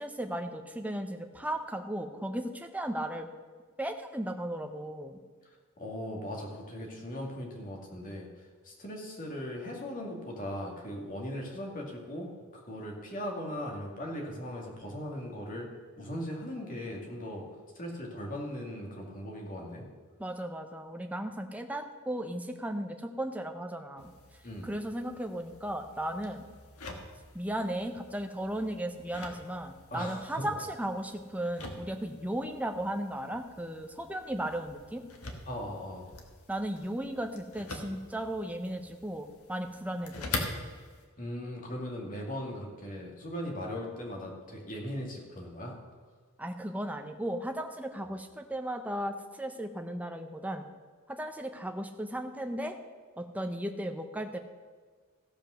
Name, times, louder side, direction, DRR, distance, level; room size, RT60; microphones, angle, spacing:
voice 1, 0.0-3.3 3.8-5.2 20.2-24.1 24.6-26.4 27.3-35.0 36.5-40.4 46.4-50.6 51.1-52.7 53.2-54.4, right 1 dB, 5° right, 5 dB, 0.8 m, -36 dB
voice 2, 5.8-15.7 16.0-17.4 17.7-19.8 24.4-24.7 29.9-30.5 35.5-36.1 41.2-45.8, equal, 40° left, 0 dB, 2.4 m, -39 dB
sound 1, 24.0-41.1, left 2 dB, 80° left, 1.7 m, -45 dB
16.0 x 5.4 x 6.4 m, 1.5 s
head